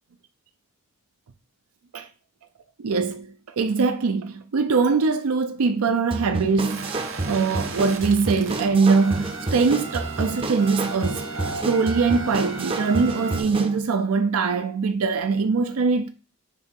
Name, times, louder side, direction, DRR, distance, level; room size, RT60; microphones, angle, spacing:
voice 1, 2.8-6.9 7.3-11.3 11.6-16.1, right 4 dB, 85° right, 0.5 m, -22 dB
sound 1, 6.1-13.8, right 2 dB, 25° right, 0.5 m, -30 dB
sound 2, 6.7-13.4, right 4 dB, 60° right, 1.0 m, -36 dB
6.6 x 2.9 x 5.3 m
head